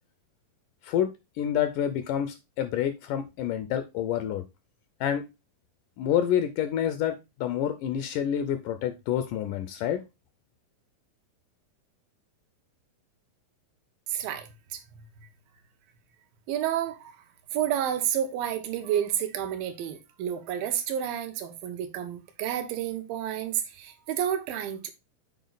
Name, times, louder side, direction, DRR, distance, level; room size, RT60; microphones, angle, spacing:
voice 1, 1.4-4.4 5.0-5.2 6.0-10.0, left 10 dB, 80° left, 2.0 m, -28 dB
voice 2, 14.1-14.8 16.5-17.1 17.5-24.9, right 10 dB, 80° right, 2.6 m, -30 dB
7.1 x 4.6 x 3.9 m
omnidirectional pair, 4.1 m